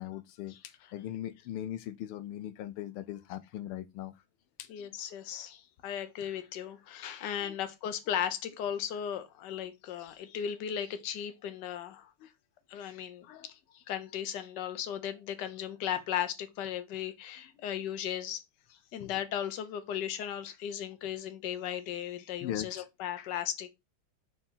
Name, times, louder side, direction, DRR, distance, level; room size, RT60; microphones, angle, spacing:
voice 1, 0.0-4.1 4.6-4.9 7.4-7.5 13.2-13.5 19.0-19.2 22.4-22.8, left 12 dB, 85° left, 1.5 m, -40 dB
voice 2, 4.7-12.3 12.7-18.4 18.7-23.7, left 9 dB, 60° left, 1.4 m, -36 dB
4.6 x 4.0 x 5.5 m
omnidirectional pair, 2.4 m